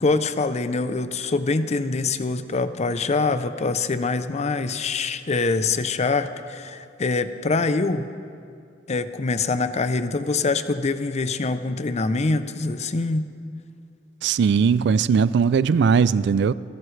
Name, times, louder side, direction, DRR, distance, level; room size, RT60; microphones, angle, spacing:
voice 1, 0.0-8.1 8.9-13.3, left 3 dB, 35° left, 11 dB, 0.6 m, -24 dB
voice 2, 14.2-16.5, right 6 dB, 65° right, 17 dB, 0.3 m, -19 dB
28.0 x 12.5 x 3.3 m, 2.4 s
head